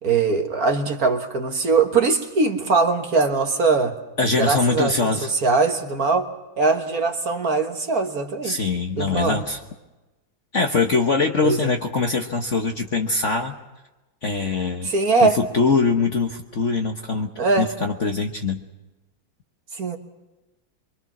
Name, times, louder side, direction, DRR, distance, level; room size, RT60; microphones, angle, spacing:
voice 1, 0.0-3.9 4.4-6.3 6.6-8.7 9.0-9.4 11.4-11.7 14.8-15.4 17.4-17.7 19.7-20.0, right 4 dB, 50° right, 5 dB, 1.8 m, -21 dB
voice 2, 4.2-5.3 8.4-9.6 10.5-13.5 14.2-14.9 15.2-17.3 17.6-18.6, left 4 dB, 45° left, 4 dB, 1.2 m, -22 dB
24.5 x 24.5 x 6.0 m, 1.1 s
omnidirectional pair, 2.3 m